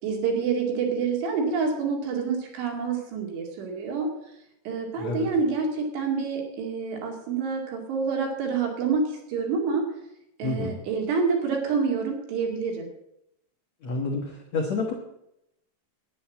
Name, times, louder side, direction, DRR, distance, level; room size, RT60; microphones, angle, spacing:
voice 1, 0.0-4.1 4.7-9.8 10.4-12.9, right 5 dB, 65° right, 1 dB, 4.3 m, -27 dB
voice 2, 5.0-5.3 10.4-10.8 13.8-14.9, left 3 dB, 80° left, 1 dB, 1.5 m, -29 dB
11.0 x 9.8 x 7.4 m, 0.81 s
omnidirectional pair, 5.7 m